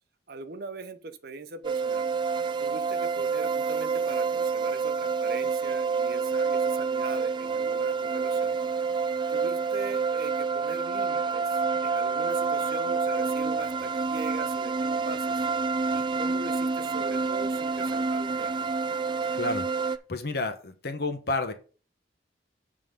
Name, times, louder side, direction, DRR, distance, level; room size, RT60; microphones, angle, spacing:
voice 1, 0.3-2.1 2.6-8.6 9.3-11.6 11.8-15.4 15.9-18.6, right 3 dB, 60° right, 0.8 m, -41 dB
sound 1, 1.6-20.0, right 5 dB, 25° right, 0.4 m, -28 dB
voice 2, 19.3-21.5, left 2 dB, 60° left, 1.1 m, -31 dB
7.4 x 3.7 x 6.4 m
head